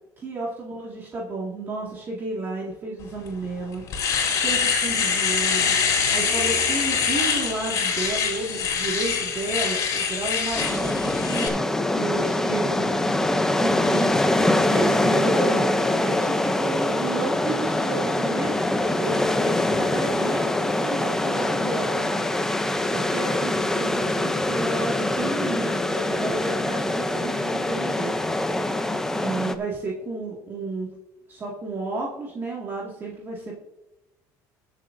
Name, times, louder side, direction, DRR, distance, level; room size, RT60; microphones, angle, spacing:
voice 1, 0.2-5.7 6.1-11.6 11.9-12.9 13.2-14.1 14.7-18.5 19.0-22.1 22.8-28.1 29.2-30.9 31.3-33.5, right 3 dB, 30° right, -4 dB, 2.1 m, -32 dB
Domestic sounds home sounds, 3.3-3.4 3.7-11.5, left 6 dB, 50° left, 3.6 m, -24 dB
sound 1, 10.5-29.5, left 1 dB, 5° left, 0.7 m, -24 dB
21.0 x 7.3 x 2.7 m, 0.93 s
cardioid pair, 145°, 8 cm